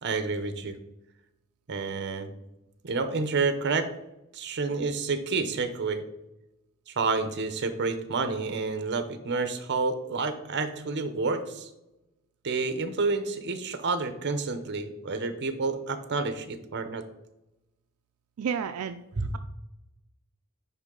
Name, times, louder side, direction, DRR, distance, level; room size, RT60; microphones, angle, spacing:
voice 1, 0.0-0.7 1.7-2.3 2.8-3.9 4.3-6.0 7.0-11.7 12.4-17.0 19.2-19.3, right 4 dB, 55° right, 10 dB, 0.7 m, -29 dB
voice 2, 18.4-19.0, right 7 dB, 80° right, 8 dB, 0.4 m, -30 dB
10.0 x 3.8 x 3.8 m, 0.94 s
head